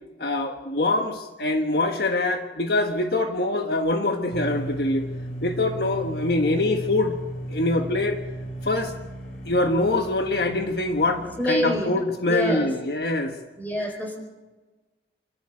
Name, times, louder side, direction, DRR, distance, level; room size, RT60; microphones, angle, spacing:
voice 1, 0.2-5.1 5.4-7.2 7.5-8.2 8.6-8.9 9.4-13.4, left 2 dB, 60° left, 5 dB, 1.4 m, -24 dB
sound 1, 4.3-11.5, right 1 dB, 45° left, 4.1 m, -35 dB
voice 2, 11.4-11.9 12.2-12.7 13.6-14.2, equal, 10° left, 2 dB, 4.7 m, -26 dB
27.5 x 12.5 x 9.0 m, 1.2 s
head